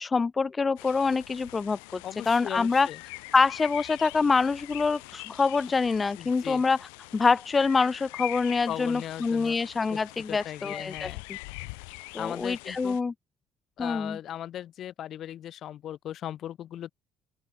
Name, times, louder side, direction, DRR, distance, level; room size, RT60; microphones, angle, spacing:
voice 1, 0.0-2.0 2.3-2.9 3.3-6.8 7.1-11.1 12.1-13.1 13.8-14.2, left 4 dB, 25° left, 0.4 m, -25 dB
sound 1, 0.8-13.0, left 33 dB, 85° left, 6.3 m, -43 dB
voice 2, 2.0-3.0 6.2-6.6 8.7-9.6 9.9-10.0 10.3-11.2 12.2-13.0 13.8-16.9, left 11 dB, 55° left, 1.4 m, -38 dB
open air
supercardioid pair, 80°, 0 cm